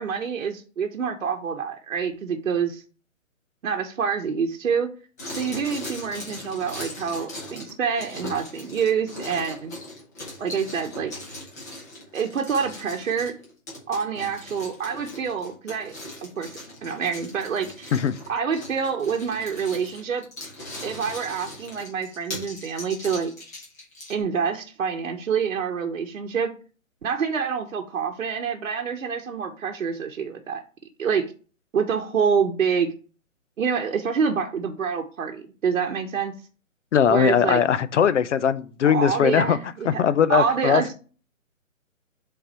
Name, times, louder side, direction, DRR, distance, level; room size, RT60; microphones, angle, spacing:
voice 1, 0.0-2.8 3.6-4.9 5.3-9.7 10.4-11.1 12.1-13.3 13.9-15.9 16.2-17.9 18.3-20.3 20.8-23.3 24.1-26.5 27.0-30.6 31.0-31.3 31.7-32.9 33.6-36.3 37.1-37.6 38.8-40.0 40.3-40.9, right 6 dB, 65° right, 1.0 m, -26 dB
sound 1, 5.2-24.2, left 1 dB, 10° left, 0.8 m, -39 dB
voice 2, 36.9-39.6 39.8-40.9, left 8 dB, 60° left, 0.6 m, -20 dB
5.5 x 4.0 x 4.3 m
hypercardioid pair, 170°, 41 cm